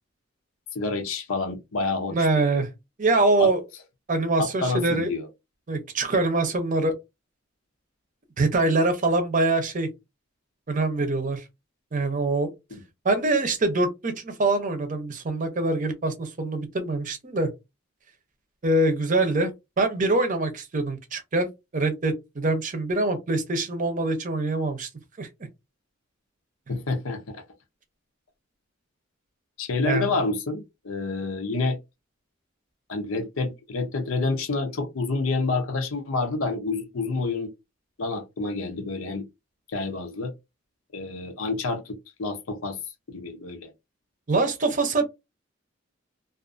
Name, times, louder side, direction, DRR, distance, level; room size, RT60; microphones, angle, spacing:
voice 1, 0.7-2.4 3.4-3.5 4.4-5.3 12.7-12.8 26.7-27.4 29.6-31.8 32.9-37.5 38.0-39.3 39.7-40.3 40.9-42.8 43.1-43.7, left 3 dB, 85° left, 0.6 m, -28 dB
voice 2, 2.1-2.7 3.0-3.6 4.1-5.1 5.7-6.9 8.4-9.9 10.7-11.4 11.9-12.5 13.0-17.5 18.6-19.5 19.8-24.9 25.2-25.3 29.8-30.2 44.3-45.0, right 2 dB, 40° right, 0.6 m, -24 dB
2.4 x 2.4 x 2.4 m
head